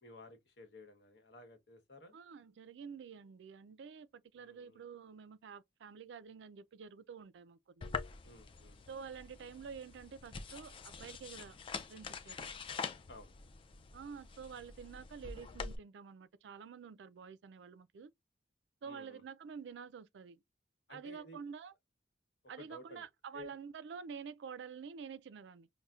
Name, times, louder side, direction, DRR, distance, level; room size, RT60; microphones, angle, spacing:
voice 1, 0.0-2.2 4.4-4.8 8.2-8.8 13.1-13.3 18.8-19.2 20.9-21.4 22.6-23.1 23.3-23.5, left 2 dB, 65° left, 1.1 m, -54 dB
voice 2, 2.1-7.9 8.9-11.6 11.9-12.5 13.9-18.1 18.8-20.4 20.9-21.7 22.5-25.7, right 6 dB, 75° right, 0.4 m, -49 dB
sound 1, 7.8-15.8, left 5 dB, 30° left, 0.3 m, -45 dB
5.4 x 2.1 x 2.3 m
head